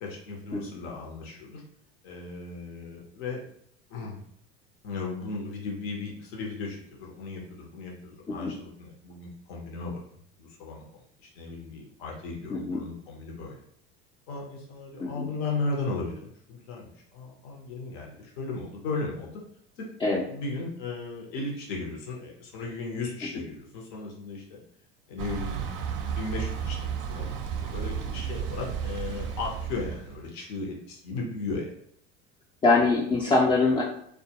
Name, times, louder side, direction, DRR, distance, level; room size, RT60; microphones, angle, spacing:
voice 1, 0.0-1.6 2.0-3.4 3.9-4.2 4.8-10.0 10.4-10.8 11.2-13.6 14.3-19.4 19.8-19.9 20.2-24.6 25.1-27.3 27.7-31.7, left 3 dB, 70° left, -2 dB, 0.8 m, -36 dB
voice 2, 12.5-12.8 15.0-15.3 20.0-20.2 32.6-33.8, left 3 dB, 20° left, -4 dB, 0.4 m, -23 dB
Thunder / Bicycle, 25.2-30.2, right 7 dB, 50° right, 0.4 m, -33 dB
2.3 x 2.2 x 2.8 m, 0.67 s
hypercardioid pair, 90°, 32 cm